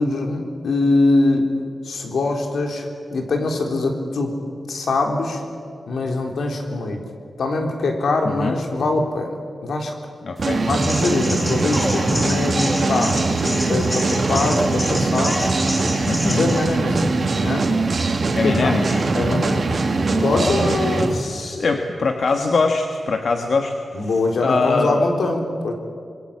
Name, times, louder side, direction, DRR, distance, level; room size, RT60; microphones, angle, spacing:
voice 1, 0.0-1.5 1.8-4.4 4.7-5.4 5.9-7.0 7.4-9.9 10.6-15.5 16.2-17.7 18.4-18.7 19.1-19.8 20.1-20.6 23.9-25.7, left 2 dB, 80° left, 3 dB, 3.8 m, -23 dB
voice 2, 8.2-8.6 10.2-10.6 16.0-16.5 18.3-19.1 20.3-24.1 24.4-25.0, left 3 dB, 55° left, 4 dB, 1.5 m, -23 dB
sound 1, 10.4-21.2, right 3 dB, 50° right, 2.6 m, -22 dB
sound 2, 10.8-16.6, equal, 10° left, 6.4 m, -28 dB
26.0 x 22.0 x 8.7 m, 2.3 s
wide cardioid pair, 155°, 0 cm